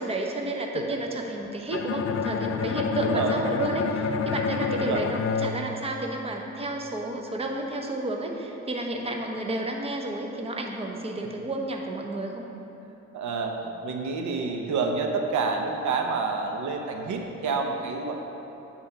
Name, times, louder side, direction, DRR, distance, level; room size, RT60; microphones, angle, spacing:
voice 1, 0.0-12.5, right 2 dB, 20° right, 2 dB, 0.8 m, -31 dB
Bowed string instrument, 1.7-6.6, left 6 dB, 45° left, 0.5 m, -29 dB
voice 2, 2.7-3.3 4.8-5.0 13.1-18.2, right 4 dB, 75° right, 3 dB, 0.9 m, -28 dB
8.6 x 4.4 x 5.7 m, 2.9 s
cardioid pair, 90°, 30 cm